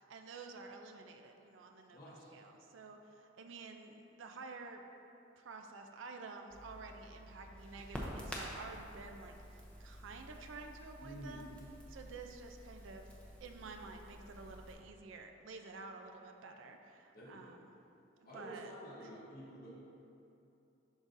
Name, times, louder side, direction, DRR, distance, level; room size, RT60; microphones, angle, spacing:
voice 1, 0.0-2.0 2.3-4.8 5.4-11.5 11.9-13.1 13.4-17.7 18.2-18.7 19.0-19.1, right 4 dB, 85° right, 4 dB, 0.4 m, -50 dB
voice 2, 1.9-2.3 11.0-11.5 17.1-17.5 18.2-19.7, equal, 50° left, -8 dB, 1.2 m, -50 dB
Crackle, 6.5-14.7, equal, 5° left, 0.6 m, -49 dB
11.0 x 4.0 x 2.6 m, 2.8 s
head